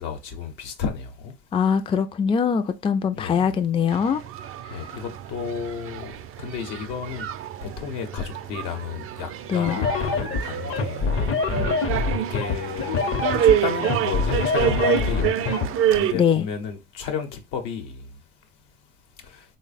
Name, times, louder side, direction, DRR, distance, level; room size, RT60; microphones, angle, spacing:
voice 1, 0.0-1.3 3.1-3.5 4.7-6.1 6.4-7.3 7.6-11.1 12.1-13.0 13.4-18.0, left 7 dB, 80° left, 0.9 m, -32 dB
voice 2, 1.5-4.2 4.7-4.9 9.5-9.8 16.1-16.5, left 7 dB, 20° left, 0.3 m, -22 dB
sound 1, 3.9-16.1, right 10 dB, 50° right, 0.4 m, -27 dB
sound 2, 9.7-15.7, left 5 dB, 50° left, 0.7 m, -25 dB
3.3 x 2.1 x 4.0 m
supercardioid pair, 75°, 30 cm